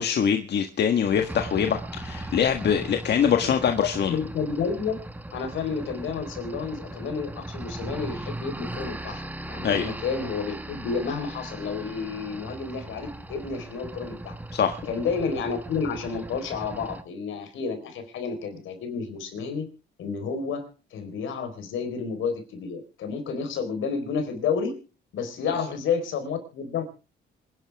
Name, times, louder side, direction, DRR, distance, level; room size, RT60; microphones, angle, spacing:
voice 1, 0.0-4.2 9.6-9.9 14.5-14.8, left 8 dB, 60° left, 6 dB, 1.6 m, -23 dB
sound 1, 1.0-17.0, right 1 dB, 10° right, 1.5 m, -38 dB
voice 2, 3.8-4.9 5.3-9.2 9.5-14.3 14.9-19.7 20.0-24.8 25.1-26.8, left 5 dB, 80° left, 7 dB, 4.4 m, -30 dB
26.5 x 11.0 x 3.5 m, 0.34 s
cardioid pair, 90°, 20 cm